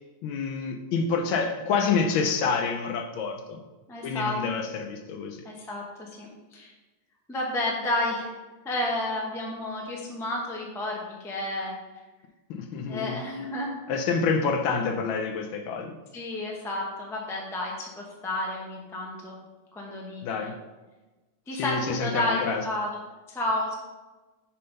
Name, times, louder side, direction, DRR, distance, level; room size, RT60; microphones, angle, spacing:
voice 1, 0.2-3.6 4.0-5.4 12.5-13.2 13.9-15.9 20.2-20.5 21.5-22.6, left 5 dB, 75° left, 4 dB, 1.3 m, -27 dB
voice 2, 3.9-4.4 5.4-6.7 7.3-8.3 8.6-11.7 12.9-13.7 16.1-19.4 19.7-20.2 21.5-22.9 23.3-23.8, left 1 dB, 5° left, -2 dB, 0.5 m, -31 dB
6.6 x 3.7 x 5.3 m, 1.2 s
omnidirectional pair, 2.3 m